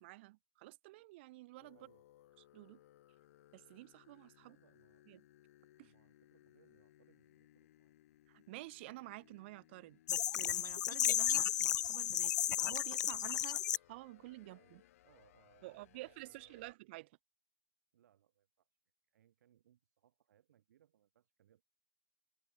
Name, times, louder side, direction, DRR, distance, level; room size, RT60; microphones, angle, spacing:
voice 1, 0.0-1.8 2.5-2.8 3.5-4.6 5.1-5.2 5.8-5.9 8.3-13.6 13.9-14.8 15.6-17.1, right 20 dB, 40° right, 1.7 m, -51 dB
sound 1, 1.6-16.7, left 14 dB, 50° left, 2.8 m, -66 dB
voice 2, 1.7-2.1 4.4-5.1 5.8-7.9 14.4-16.7 17.9-18.7 19.0-21.6, right 11 dB, 65° right, 6.7 m, -71 dB
sound 2, 10.1-13.8, left 12 dB, 85° left, 0.4 m, -33 dB
supercardioid pair, 170°, 9 cm